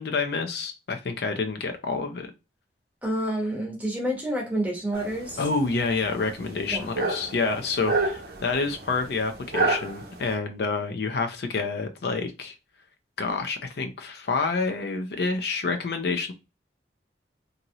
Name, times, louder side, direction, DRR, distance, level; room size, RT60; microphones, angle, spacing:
voice 1, 0.0-2.3 5.4-12.5 13.2-16.3, left 4 dB, 60° left, 0.4 m, -28 dB
voice 2, 3.0-5.4 6.7-6.9, right 1 dB, 10° right, 0.8 m, -28 dB
sound 1, 4.9-10.3, right 3 dB, 55° right, 0.7 m, -30 dB
2.9 x 2.7 x 2.7 m
head